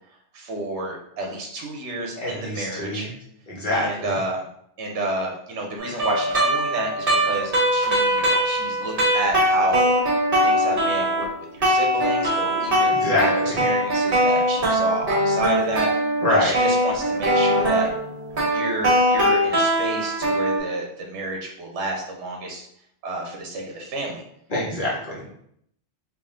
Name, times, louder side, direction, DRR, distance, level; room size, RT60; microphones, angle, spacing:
voice 1, 0.3-3.1 3.7-4.4 4.8-9.9 10.4-11.3 11.5-15.9 16.3-17.9 18.5-22.6 23.0-24.2, right 2 dB, 80° right, 1 dB, 1.0 m, -30 dB
voice 2, 2.2-3.1 3.5-4.2 12.7-13.6 16.2-16.5 24.5-25.4, left 1 dB, 50° left, -6 dB, 0.9 m, -25 dB
sound 1, 5.8-11.3 11.6-20.6, equal, 50° right, 1.4 m, -21 dB
3.5 x 2.4 x 3.6 m, 0.70 s
omnidirectional pair, 1.2 m